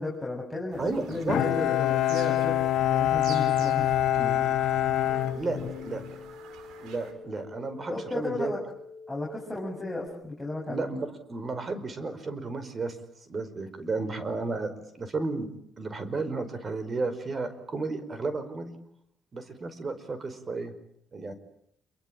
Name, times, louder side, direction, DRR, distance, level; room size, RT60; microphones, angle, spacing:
voice 1, 0.0-4.4 5.5-6.0 7.9-8.6 9.1-11.0, left 2 dB, 5° left, -3 dB, 7.4 m, -34 dB
Bird vocalization bird call bird song, 0.7-7.1, right 6 dB, 90° right, 4.8 m, -47 dB
voice 2, 0.8-1.4 3.6-3.8 5.3-6.0 6.8-8.5 10.7-13.0 13.2-15.5 15.8-18.8 19.3-20.7 21.1-21.3, right 3 dB, 35° right, 12 dB, 4.9 m, -33 dB
Bowed string instrument, 1.3-6.1, left 12 dB, 80° left, 1.6 m, -25 dB
sound 1, 5.1-10.1, left 4 dB, 55° left, 3.7 m, -46 dB
27.5 x 23.5 x 8.9 m, 0.70 s
cardioid pair, 90°, 0 cm